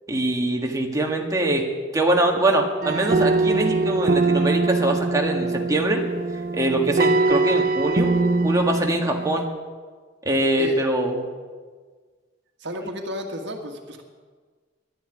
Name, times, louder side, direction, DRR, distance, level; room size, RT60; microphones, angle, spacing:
voice 1, 0.1-6.0 6.5-8.2 8.4-9.5 10.3-11.2, right 1 dB, 20° right, 1 dB, 1.8 m, -23 dB
sound 1, 2.8-9.4, right 3 dB, 50° right, 0.7 m, -22 dB
voice 2, 12.6-14.0, equal, 65° right, 3 dB, 1.7 m, -32 dB
11.5 x 10.5 x 9.1 m, 1.5 s
head